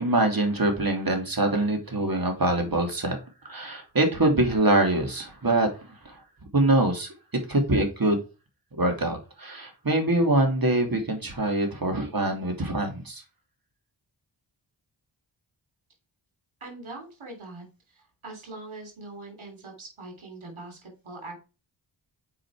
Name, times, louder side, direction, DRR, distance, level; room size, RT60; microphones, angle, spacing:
voice 1, 0.0-6.2 6.5-7.1 7.5-8.2 8.7-13.2, right 2 dB, 45° right, 4 dB, 2.8 m, -24 dB
voice 2, 16.6-21.4, right 2 dB, 85° right, 3 dB, 3.3 m, -42 dB
7.5 x 5.3 x 4.8 m, 0.31 s
cardioid pair, 40°, 47 cm